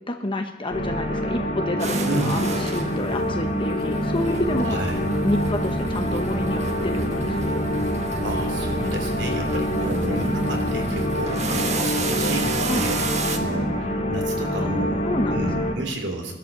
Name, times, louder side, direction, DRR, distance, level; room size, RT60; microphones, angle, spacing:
voice 1, 0.1-4.8 5.2-7.6 12.7-12.9 15.0-15.5, left 1 dB, 30° left, 5 dB, 1.0 m, -29 dB
sound 1, 0.7-15.7, equal, 45° left, 2.3 m, -26 dB
sound 2, 1.8-13.4, right 3 dB, 40° right, 1.4 m, -31 dB
voice 2, 2.0-2.5 4.6-5.0 8.2-13.0 13.3-15.1 15.3-16.3, right 1 dB, 70° right, 3 dB, 3.2 m, -31 dB
17.5 x 12.0 x 6.7 m, 1.2 s
head